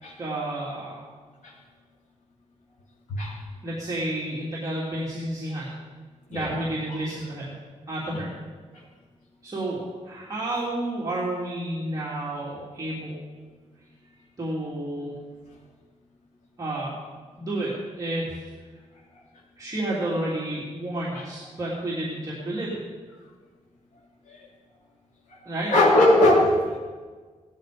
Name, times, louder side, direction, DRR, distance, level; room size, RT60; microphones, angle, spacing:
voice 1, 0.2-1.0 3.6-5.7 6.3-7.5 7.9-8.3 9.4-13.2 14.4-15.2 16.6-16.9 17.4-18.4 19.6-22.8 25.4-25.7, right 1 dB, 25° right, -7 dB, 3.2 m, -30 dB
voice 2, 25.7-26.8, left 1 dB, 80° left, -6 dB, 3.4 m, -20 dB
17.5 x 13.5 x 5.1 m, 1.5 s
wide cardioid pair, 135°, 13 cm